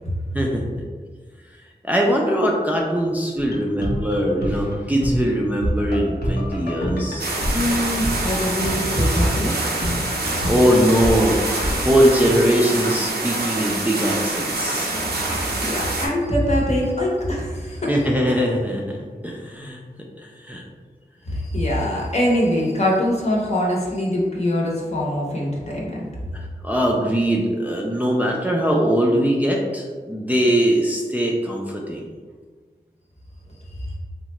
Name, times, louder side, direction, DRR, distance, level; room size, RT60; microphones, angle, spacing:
voice 1, 0.3-0.7 1.8-7.3 10.4-14.9 17.9-19.8 20.2-20.6 26.3-32.1, equal, 10° right, -2 dB, 0.4 m, -21 dB
sound 1, 3.4-13.3 13.6-13.7, equal, 85° left, 0.7 m, -28 dB
sound 2, 7.2-16.1, right 2 dB, 85° right, 0.5 m, -26 dB
voice 2, 7.5-9.7 15.3-17.9 21.3-26.1 33.8-33.9, left 1 dB, 45° left, -3 dB, 0.8 m, -23 dB
3.6 x 2.1 x 3.0 m, 1.5 s
wide cardioid pair, 85°, 16 cm